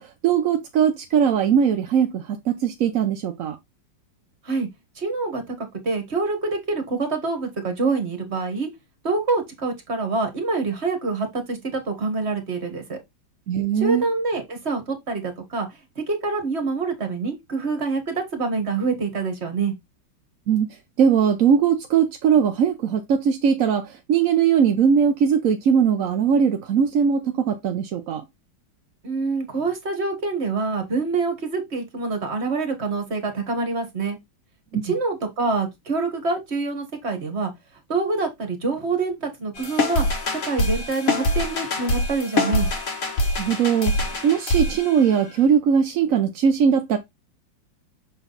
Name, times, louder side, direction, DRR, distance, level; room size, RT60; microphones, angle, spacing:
voice 1, 0.0-3.6 13.5-14.0 20.5-20.7 21.0-28.2 34.7-34.9 43.4-47.0, right 7 dB, 60° right, 0.9 m, -20 dB
voice 2, 5.0-8.7 9.0-13.0 13.8-15.7 15.9-19.7 29.0-34.2 34.8-37.5 37.9-40.1 40.4-42.7, right 3 dB, 35° right, 1.9 m, -26 dB
sound 1, 39.6-45.4, left 1 dB, 45° left, 1.9 m, -25 dB
7.0 x 3.9 x 4.0 m
omnidirectional pair, 2.1 m